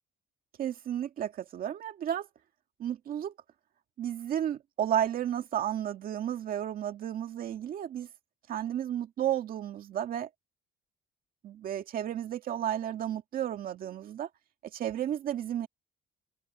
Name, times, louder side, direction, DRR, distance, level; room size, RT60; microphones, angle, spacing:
voice 1, 0.6-2.3 2.8-3.3 4.0-8.1 8.5-10.3 11.4-14.3 14.7-15.7, right 10 dB, 50° right, 2.1 m, -32 dB
open air
cardioid pair, 175°, 19 cm